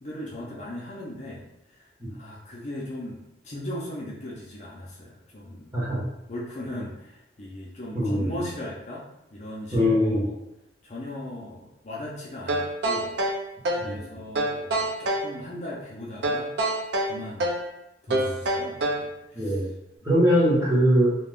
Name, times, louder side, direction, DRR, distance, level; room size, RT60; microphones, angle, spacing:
voice 1, 0.0-5.7 6.3-10.4 10.8-13.2 13.8-16.6 17.0-17.5 18.0-19.6, left 1 dB, 40° left, -4 dB, 0.5 m, -38 dB
voice 2, 7.9-8.4 9.7-10.2 13.8-14.0 18.2-18.3 19.3-19.7 20.0-21.1, equal, 20° right, -8 dB, 1.0 m, -22 dB
sound 1, 12.5-13.9 14.3-15.3 16.2-17.7 18.1-19.1, right 1 dB, 65° right, 0.4 m, -26 dB
2.4 x 2.3 x 3.4 m, 0.87 s
head